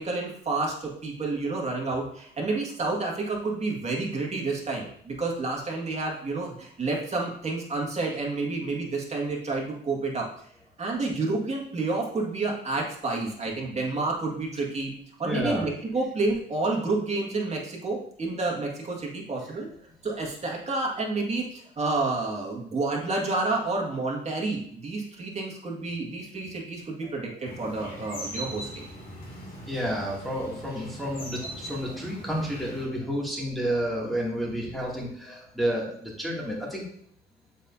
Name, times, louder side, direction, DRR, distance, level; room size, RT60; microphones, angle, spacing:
voice 1, 0.0-10.2 10.8-14.9 15.2-19.7 20.0-28.8, right 3 dB, 35° right, -1 dB, 2.0 m, -29 dB
voice 2, 15.2-15.6 29.6-36.9, equal, ahead, -5 dB, 2.5 m, -30 dB
sound 1, 27.4-32.9, equal, 45° left, 2.6 m, -40 dB
7.2 x 5.4 x 2.7 m, 0.62 s
cardioid pair, 90°, 20 cm